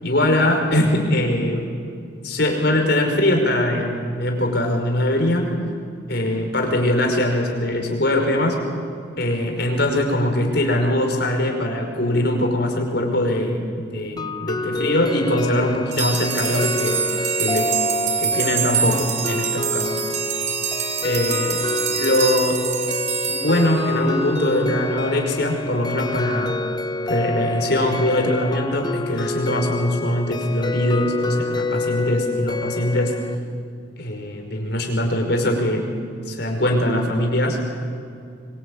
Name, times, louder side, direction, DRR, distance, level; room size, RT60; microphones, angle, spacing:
voice 1, 0.0-1.7 2.2-5.5 6.1-8.6 9.2-17.0 17.4-17.7 18.2-19.9 21.0-21.6 22.0-22.7 23.3-26.6 27.1-33.2 34.0-35.9 36.3-37.6, left 1 dB, 60° left, 2 dB, 5.4 m, -22 dB
sound 1, 14.2-33.4, left 3 dB, 20° left, 0.6 m, -28 dB
sound 2, 15.9-24.4, right 7 dB, 40° right, 2.8 m, -26 dB
25.0 x 24.5 x 8.9 m, 2.3 s
head